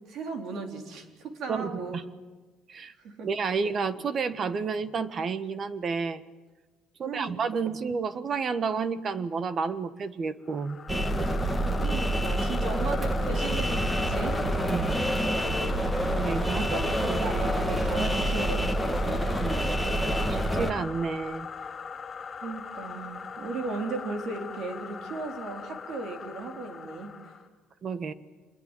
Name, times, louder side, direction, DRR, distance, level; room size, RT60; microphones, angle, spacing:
voice 1, 0.1-2.0 3.0-3.3 7.0-7.4 11.8-14.4 16.5-18.9 22.4-27.3, right 3 dB, 55° right, 5 dB, 4.1 m, -36 dB
voice 2, 1.5-2.0 2.7-2.9 3.2-6.2 7.0-10.8 14.7-14.9 16.1-16.7 17.0-17.2 19.4-19.6 20.3-21.5 27.8-28.1, right 5 dB, 35° right, 14 dB, 1.4 m, -30 dB
sound 1, 10.5-27.5, left 6 dB, 30° left, 3.7 m, -40 dB
Zombie Horde, 10.9-20.7, equal, 5° right, 2.1 m, -27 dB
26.5 x 21.5 x 9.2 m, 1.3 s
cardioid pair, 140°, 0 cm